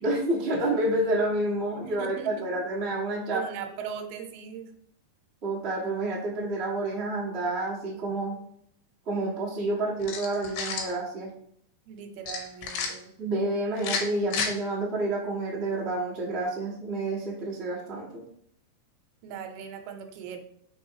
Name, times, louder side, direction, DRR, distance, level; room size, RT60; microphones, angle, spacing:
voice 1, 0.0-3.4 5.4-8.4 9.0-11.3 13.2-18.2, right 2 dB, 60° right, -5 dB, 0.6 m, -29 dB
voice 2, 1.8-2.5 3.3-4.7 11.9-13.1 19.2-20.4, right 7 dB, 80° right, 6 dB, 2.7 m, -39 dB
sound 1, 10.0-10.9 12.3-12.9 13.8-14.5, left 5 dB, 85° left, 3.0 m, -31 dB
6.2 x 3.5 x 4.8 m, 0.69 s
omnidirectional pair, 4.5 m